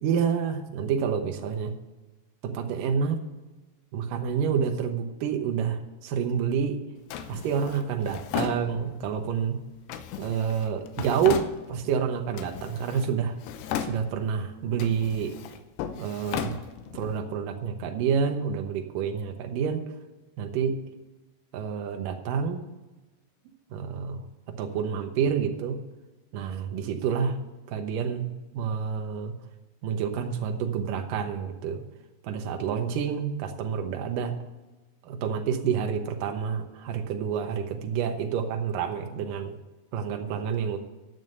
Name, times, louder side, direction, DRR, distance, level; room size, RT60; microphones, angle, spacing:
voice 1, 0.0-1.8 2.4-3.2 3.9-6.8 7.3-9.6 10.2-13.3 13.8-15.4 16.0-16.6 16.9-19.8 20.4-20.8 21.5-22.7 23.7-25.8 26.3-27.4 27.7-29.3 29.8-31.8 32.2-34.4 35.0-39.6 39.9-40.8, right 7 dB, 70° right, 5 dB, 2.3 m, -28 dB
Drawer open or close, 7.1-9.2 9.9-12.0 12.3-13.1 13.4-14.4 14.7-17.2, left 8 dB, 90° left, 3.1 m, -36 dB
11.0 x 7.2 x 7.8 m, 1.1 s
omnidirectional pair, 4.9 m